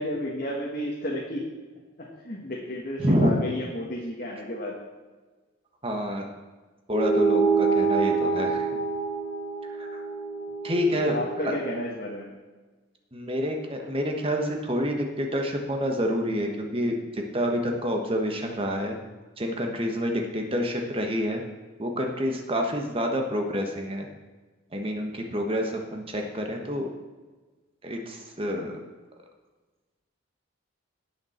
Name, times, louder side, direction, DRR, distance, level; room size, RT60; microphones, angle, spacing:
voice 1, 0.0-1.4 2.0-4.8 10.9-12.3, left 1 dB, 45° left, -3 dB, 1.4 m, -32 dB
voice 2, 3.0-3.3 5.8-6.2 6.9-8.8 9.8-10.0 10.6-11.2 11.4-11.5 13.1-19.0 19.4-21.4 21.8-24.1 24.7-26.9 27.8-28.7, equal, 25° right, 2 dB, 1.3 m, -28 dB
sound 1, 6.9-11.7, right 4 dB, 15° left, 0.9 m, -26 dB
17.5 x 6.5 x 4.4 m, 1.3 s
head